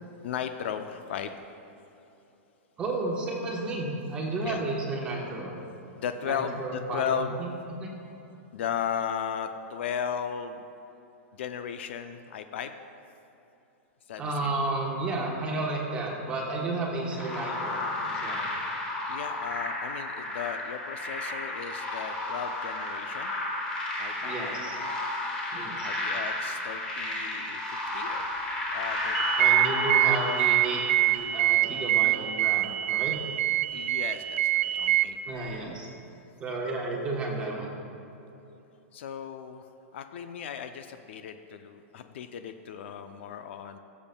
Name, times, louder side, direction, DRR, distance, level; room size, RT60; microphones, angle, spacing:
voice 1, 0.2-1.4 4.4-4.6 6.0-7.4 8.5-10.6 11.3-12.7 14.1-14.6 19.1-23.3 24.0-24.4 25.3-25.4 25.8-28.3 28.7-29.5 33.7-35.2 38.9-43.8, left 8 dB, 50° left, 8 dB, 0.4 m, -36 dB
voice 2, 2.8-5.5 6.3-7.5 7.8-7.9 14.2-18.4 24.2-24.8 25.5-25.9 29.4-33.2 35.3-35.9 36.4-37.7, right 2 dB, 15° right, -1 dB, 1.1 m, -32 dB
sound 1, 17.1-31.5, left 2 dB, 10° left, 1.2 m, -32 dB
sound 2, 29.1-35.0, right 14 dB, 65° right, 0.3 m, -25 dB
18.5 x 7.1 x 2.2 m, 3.0 s
supercardioid pair, 175°, 8 cm